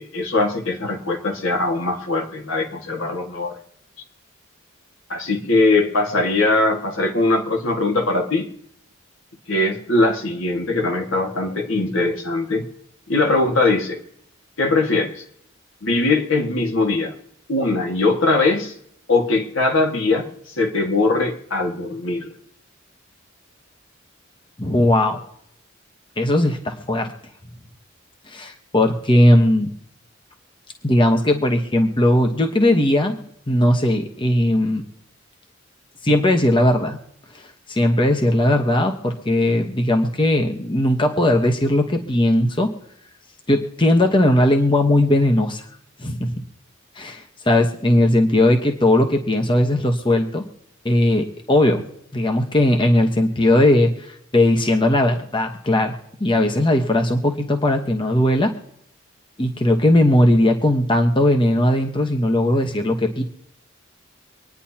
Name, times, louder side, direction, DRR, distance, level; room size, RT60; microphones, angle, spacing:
voice 1, 0.0-3.6 5.1-8.5 9.5-12.7 13.1-14.0 14.6-15.2 15.8-17.1 17.5-18.7 19.1-22.3, left 2 dB, 75° left, 3 dB, 1.9 m, -21 dB
voice 2, 24.6-25.2 26.2-27.1 28.3-29.7 30.8-33.2 33.5-34.8 36.0-37.0 37.3-37.4 37.7-42.7 43.5-45.6 46.0-46.2 46.9-50.4 50.8-51.8 52.1-58.5 59.4-63.2, left 1 dB, 25° left, 4 dB, 1.1 m, -18 dB
25.5 x 10.0 x 2.9 m, 0.74 s
head